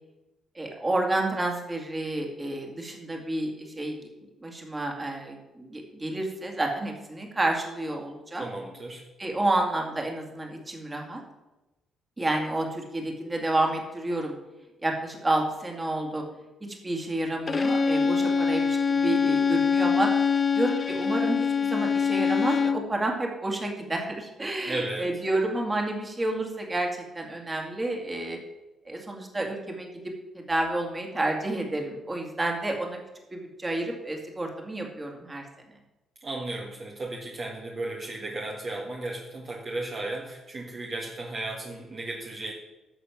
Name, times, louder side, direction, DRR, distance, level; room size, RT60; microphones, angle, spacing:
voice 1, 0.6-4.0 4.4-8.4 9.2-11.2 12.2-14.3 14.8-16.2 16.8-26.9 27.1-28.4 28.9-33.0 33.3-35.4, right 2 dB, 20° right, 1 dB, 2.3 m, -30 dB
voice 2, 8.4-9.0 24.7-25.1 36.2-42.5, right 2 dB, 40° right, -1 dB, 1.6 m, -35 dB
Bowed string instrument, 17.5-22.9, left 5 dB, 35° left, 0.6 m, -24 dB
11.0 x 6.8 x 6.0 m, 1.0 s
cardioid pair, 90°, 0 cm